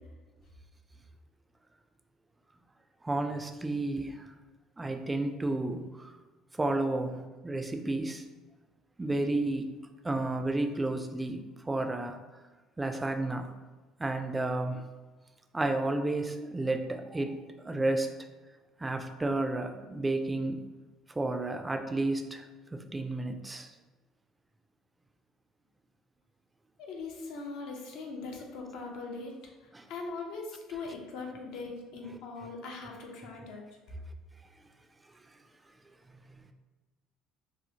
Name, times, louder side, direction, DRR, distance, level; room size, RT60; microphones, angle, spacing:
voice 1, 3.0-4.3 4.8-6.1 6.5-8.2 9.0-9.7 10.0-12.2 12.8-13.5 14.0-14.9 15.5-18.2 18.8-20.6 21.2-22.5 22.7-23.7 29.7-29.8 32.1-32.2, right 2 dB, 15° right, 6 dB, 0.3 m, -32 dB
voice 2, 26.8-29.4 29.9-33.7, left 3 dB, 75° left, 1 dB, 0.5 m, -40 dB
2.8 x 2.0 x 2.7 m, 1.2 s
supercardioid pair, 80°, 0 cm